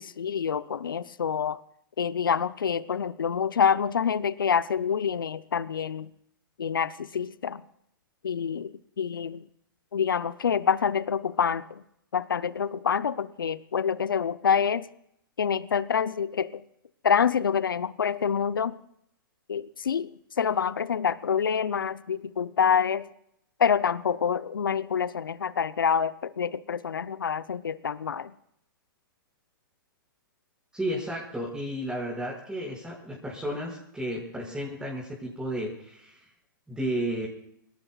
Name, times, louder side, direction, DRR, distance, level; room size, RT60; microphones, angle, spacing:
voice 1, 0.0-1.6 2.0-6.1 6.6-7.6 8.2-9.4 9.9-11.8 12.1-14.9 15.4-16.6 17.0-18.7 19.5-20.1 20.4-23.1 23.6-28.3, left 7 dB, 80° left, 15 dB, 0.7 m, -27 dB
voice 2, 30.7-36.2 36.7-37.3, equal, 5° right, -5 dB, 5.7 m, -33 dB
29.5 x 18.0 x 2.4 m, 0.75 s
hypercardioid pair, 110°, 11 cm